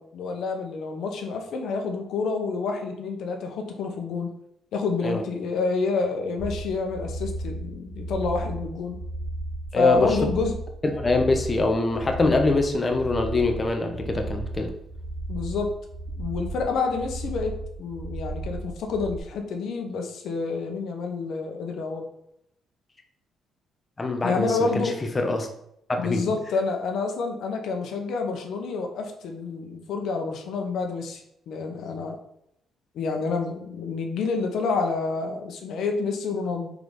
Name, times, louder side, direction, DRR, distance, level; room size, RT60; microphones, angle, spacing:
voice 1, 0.0-4.3 4.7-9.0 9.7-10.5 15.3-15.7 16.2-22.1 24.2-25.0 26.0-31.2 31.5-32.2 32.9-36.7, left 4 dB, 75° left, 3 dB, 1.0 m, -28 dB
sound 1, 6.4-19.2, right 2 dB, 35° right, 1.1 m, -34 dB
voice 2, 9.7-10.2 11.0-14.7 24.0-24.8 25.1-25.5 25.9-26.2, left 2 dB, 25° left, 4 dB, 0.9 m, -23 dB
4.7 x 3.9 x 5.3 m, 0.76 s
cardioid pair, 90°, 0 cm